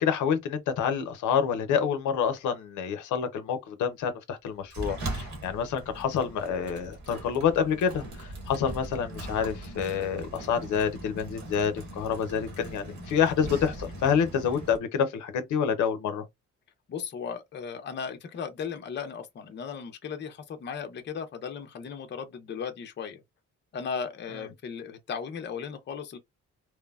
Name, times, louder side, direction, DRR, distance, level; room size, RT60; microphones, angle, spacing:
voice 1, 0.0-16.2, left 7 dB, 75° left, 0.6 m, -28 dB
Sliding door, 4.7-14.8, right 1 dB, 65° right, 1.3 m, -40 dB
voice 2, 16.9-23.2 23.7-26.2, left 6 dB, 35° left, 0.5 m, -36 dB
3.0 x 2.0 x 2.3 m
cardioid pair, 90°, 30 cm